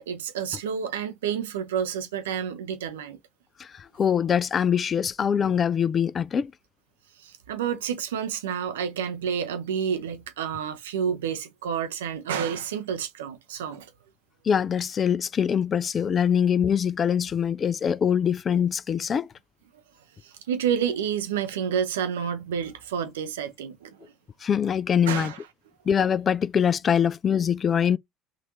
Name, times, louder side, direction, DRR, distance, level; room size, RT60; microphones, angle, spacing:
voice 1, 0.0-3.2 7.2-13.9 20.2-24.1 25.1-25.4, right 8 dB, 75° right, 0.6 m, -29 dB
voice 2, 3.6-6.5 14.5-19.3 24.4-25.3 25.9-28.0, left 8 dB, 35° left, 0.3 m, -23 dB
3.8 x 2.5 x 2.9 m
figure-of-eight pair, 65°, 0 cm